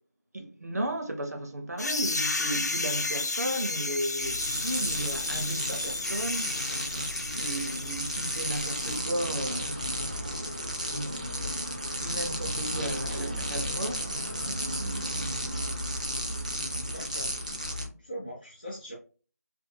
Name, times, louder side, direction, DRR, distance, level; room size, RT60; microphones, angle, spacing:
voice 1, 0.3-6.9 7.3-10.1 10.9-11.3 12.0-14.7, right 1 dB, 70° right, 0.7 m, -35 dB
sound 1, 1.8-9.0, left 3 dB, 80° left, 0.4 m, -33 dB
sound 2, 4.2-17.9, equal, 25° right, 0.4 m, -33 dB
voice 2, 12.7-13.3 16.7-17.4 18.0-19.0, equal, 30° left, 0.6 m, -41 dB
2.6 x 2.1 x 2.6 m
figure-of-eight pair, 175°, 9 cm